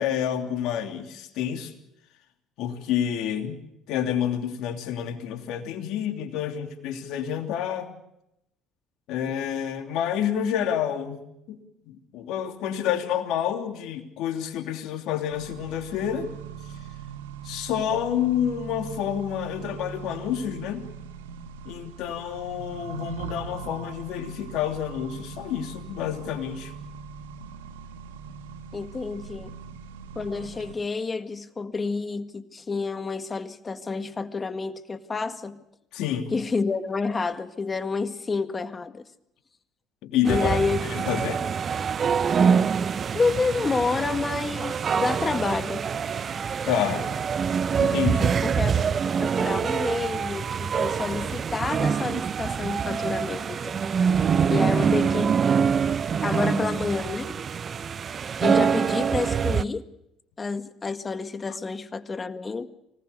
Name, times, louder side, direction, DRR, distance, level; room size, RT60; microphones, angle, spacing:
voice 1, 0.0-1.7 2.6-3.6 3.9-7.9 9.1-11.2 11.5-11.6 11.9-16.3 17.4-20.9 21.6-26.7 35.9-36.3 40.0-40.6 40.9-41.4 46.7-47.1 47.8-48.4 61.5-61.6, left 9 dB, 65° left, 3.0 m, -28 dB
Accelerating revving vroom, 15.3-30.7, right 6 dB, 85° right, 1.5 m, -40 dB
voice 2, 28.7-29.6 30.2-35.6 36.3-39.1 40.2-40.8 41.1-41.2 43.1-45.8 48.4-54.2 54.5-55.6 56.2-57.4 58.4-59.8 60.4-62.7, left 4 dB, 30° left, 1.9 m, -29 dB
sound 1, 40.3-59.6, right 6 dB, 40° right, 0.8 m, -25 dB
25.0 x 19.0 x 6.9 m
hypercardioid pair, 65°, 0 cm